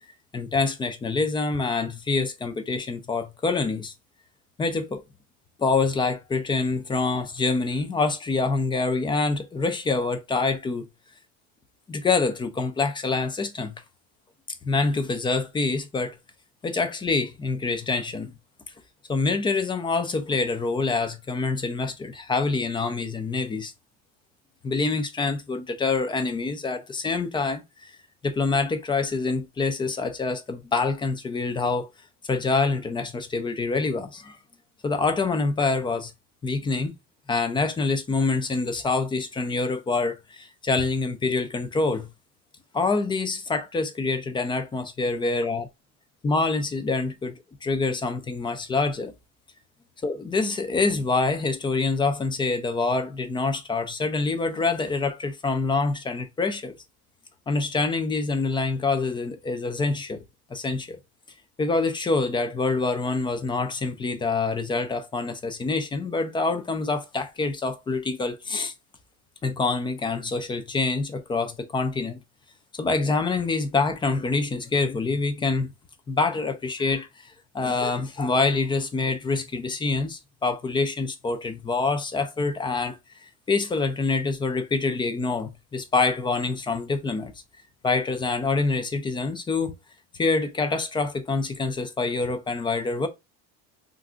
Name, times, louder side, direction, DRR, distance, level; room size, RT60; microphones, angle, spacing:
voice 1, 0.3-3.9 4.6-5.0 5.6-10.9 11.9-13.8 14.6-16.2 16.6-18.3 19.1-23.7 24.6-27.6 28.2-31.9 32.3-34.4 34.8-36.1 36.4-36.9 37.3-42.1 42.7-45.7 46.2-47.3 47.6-49.1 50.0-56.7 57.5-60.2 60.5-61.0 61.6-68.7 69.4-72.2 72.7-75.7 76.1-77.1 77.5-87.3 87.8-89.7 90.2-93.1, left 3 dB, 15° left, 0.3 m, -26 dB
2.5 x 2.2 x 3.7 m
cardioid pair, 130°, 33 cm